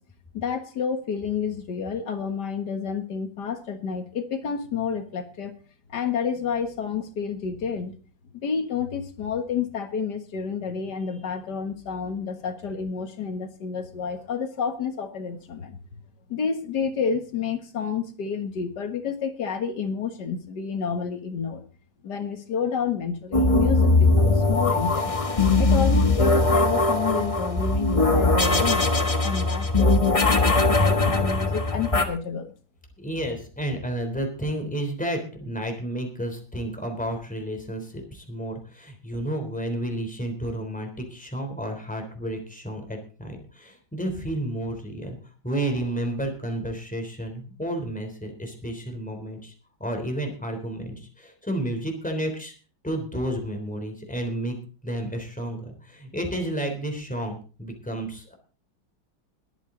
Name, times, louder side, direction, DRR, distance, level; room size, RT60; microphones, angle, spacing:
voice 1, 0.3-5.6 5.9-8.0 8.4-15.8 16.3-21.6 22.0-25.1 25.6-32.5, left 6 dB, 65° left, 8 dB, 2.1 m, -29 dB
sound 1, 23.3-32.1, left 2 dB, 20° left, 1.2 m, -20 dB
voice 2, 33.0-45.2 45.4-49.5 49.8-52.5 52.8-54.6 54.8-58.3, right 1 dB, 5° left, 3 dB, 3.5 m, -31 dB
21.0 x 9.1 x 3.9 m, 0.38 s
omnidirectional pair, 2.0 m